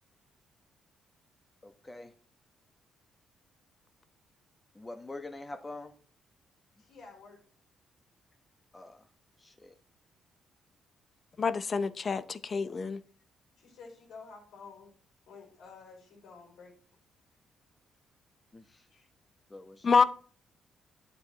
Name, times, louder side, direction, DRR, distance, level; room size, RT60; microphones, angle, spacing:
voice 1, 1.6-2.1 4.7-5.9 8.7-9.1 9.4-9.8 18.5-18.9 19.5-20.0, left 2 dB, 20° left, 1.1 m, -45 dB
voice 2, 6.8-7.4 13.6-14.9 15.3-16.8 18.9-19.1, left 4 dB, 80° left, 4.6 m, -51 dB
voice 3, 11.4-13.0 19.8-20.0, left 5 dB, 40° left, 0.6 m, -27 dB
9.3 x 6.9 x 3.0 m
cardioid pair, 90°, 0 cm